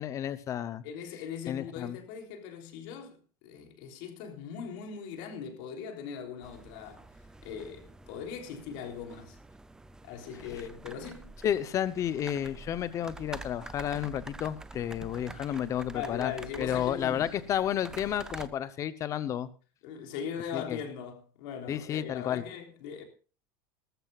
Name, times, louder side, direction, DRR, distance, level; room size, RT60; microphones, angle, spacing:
voice 1, 0.0-0.8 1.5-2.0 11.4-16.3 16.6-19.5 20.5-20.8 21.7-22.4, left 10 dB, 25° left, 0.8 m, -31 dB
voice 2, 0.8-7.1 7.4-9.4 10.0-11.4 15.9-17.3 19.8-23.0, left 7 dB, 60° left, 3.4 m, -40 dB
sound 1, 6.4-18.5, right 2 dB, 5° right, 0.5 m, -47 dB
19.0 x 14.0 x 2.4 m
cardioid pair, 170°, 12 cm